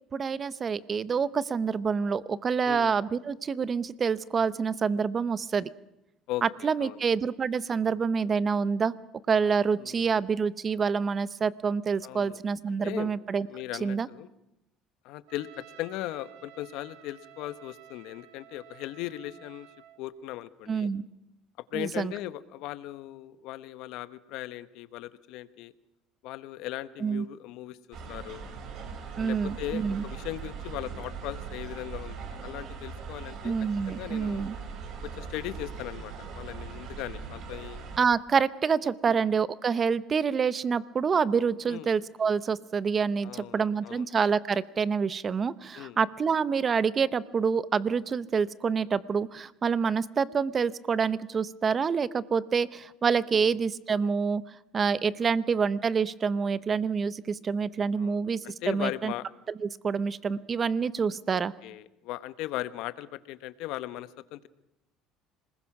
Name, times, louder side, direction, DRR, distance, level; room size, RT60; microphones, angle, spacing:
voice 1, 0.1-5.7 6.4-8.9 9.3-13.5 13.8-14.1 20.7-21.0 21.7-22.1 27.0-27.2 29.2-30.0 33.4-34.5 38.0-54.4 54.7-58.4 58.7-59.1 59.6-61.5, right 6 dB, 30° right, 17 dB, 0.8 m, -27 dB
voice 2, 2.6-3.0 6.3-7.0 9.8-10.3 12.0-12.4 12.7-13.2 13.5-14.3 15.0-19.7 20.0-20.9 21.7-25.7 26.2-28.5 29.2-33.6 33.9-34.5 35.0-37.8 39.1-39.3 41.7-41.9 43.2-44.0 45.7-46.0 53.3-53.6 55.2-55.3 58.0-58.2 58.4-59.2 61.3-64.5, left 15 dB, 70° left, 14 dB, 1.1 m, -38 dB
Trumpet, 15.3-20.0, right 12 dB, 85° right, 2.9 m, -53 dB
sound 1, 27.9-38.0, right 5 dB, 55° right, 4.1 m, -40 dB
27.0 x 20.5 x 6.1 m, 0.89 s
cardioid pair, 120°, 0 cm